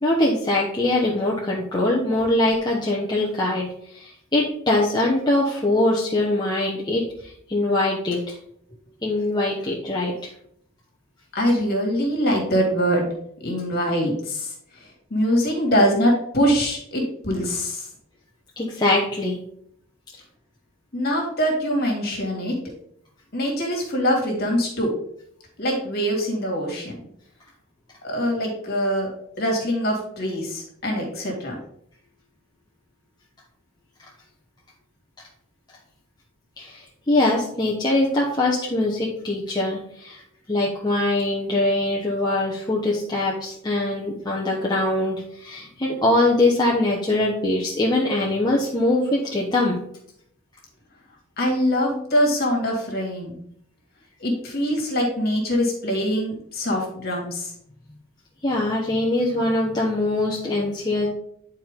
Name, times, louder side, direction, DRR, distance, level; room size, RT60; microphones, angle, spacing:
voice 1, 0.0-8.4 9.0-10.3 18.6-19.4 36.6-40.2 40.5-49.8 58.4-61.1, left 2 dB, 20° left, -4 dB, 0.9 m, -22 dB
voice 2, 11.3-13.1 13.4-14.5 14.8-17.9 20.9-22.5 23.3-24.9 25.6-26.9 28.0-29.1 29.4-31.6 51.4-53.4 54.2-57.5, equal, 45° left, 0 dB, 2.1 m, -23 dB
9.8 x 4.4 x 3.7 m, 0.69 s
head